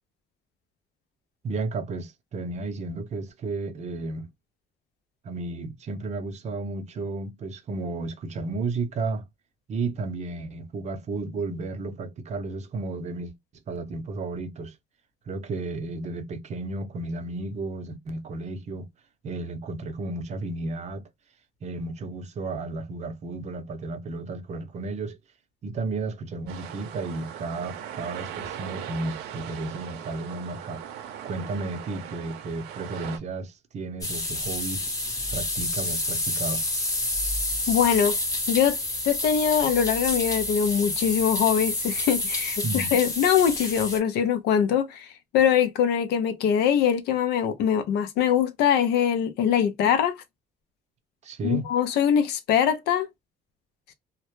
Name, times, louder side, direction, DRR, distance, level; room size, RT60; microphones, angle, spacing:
voice 1, 1.4-4.3 5.2-9.2 9.7-13.3 13.7-14.7 15.3-18.9 19.2-21.0 21.6-25.2 25.6-30.8 31.2-34.9 35.3-36.6 42.6-42.9 51.2-51.7, right 3 dB, 40° right, 0.6 m, -33 dB
sound 1, 26.5-33.2, right 9 dB, 80° right, 0.6 m, -39 dB
sound 2, 34.0-44.0, left 2 dB, 20° left, 0.8 m, -29 dB
voice 2, 37.7-38.2 38.5-38.8 39.0-45.1 45.3-50.2 51.4-53.1, left 8 dB, 75° left, 0.4 m, -23 dB
2.0 x 2.0 x 2.9 m
cardioid pair, 110°, 17 cm